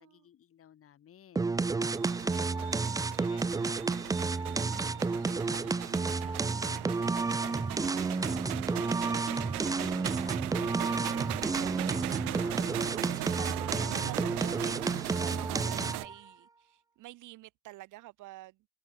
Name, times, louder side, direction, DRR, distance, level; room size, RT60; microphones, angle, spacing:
voice 1, 0.0-1.5 2.1-9.5 10.2-13.8, left 10 dB, 30° left, 5.3 m, -57 dB
sound 1, 1.4-16.1, right 4 dB, 10° right, 0.7 m, -31 dB
sound 2, 1.9-16.1, right 22 dB, 75° right, 1.9 m, -39 dB
voice 2, 13.1-18.7, right 17 dB, 45° right, 1.8 m, -48 dB
supercardioid pair, 135°, 44 cm